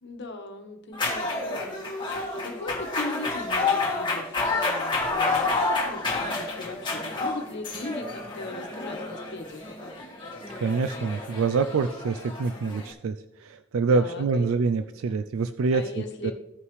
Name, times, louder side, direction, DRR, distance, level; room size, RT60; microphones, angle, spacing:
voice 1, 0.0-1.7 2.1-10.1 13.9-14.4 15.7-16.3, left 2 dB, 60° left, 4 dB, 1.3 m, -39 dB
sound 1, 0.9-12.9, left 3 dB, 25° left, 1.7 m, -29 dB
voice 2, 10.6-13.2 13.4-15.8 16.2-16.3, right 4 dB, 85° right, 10 dB, 0.4 m, -25 dB
15.0 x 5.5 x 3.2 m, 0.87 s
head